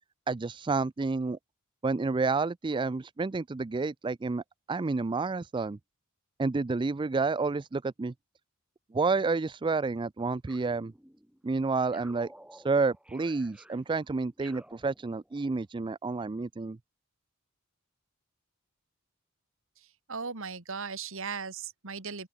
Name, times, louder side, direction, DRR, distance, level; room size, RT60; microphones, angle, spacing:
voice 1, 0.3-1.4 1.8-4.4 4.7-5.8 6.4-8.1 8.9-10.9 11.4-16.8, right 4 dB, 20° right, 0.4 m, -30 dB
sound 1, 10.4-11.4 11.9-15.6, right 1 dB, 5° right, 3.5 m, -54 dB
voice 2, 19.8-22.3, right 5 dB, 65° right, 2.4 m, -38 dB
open air
head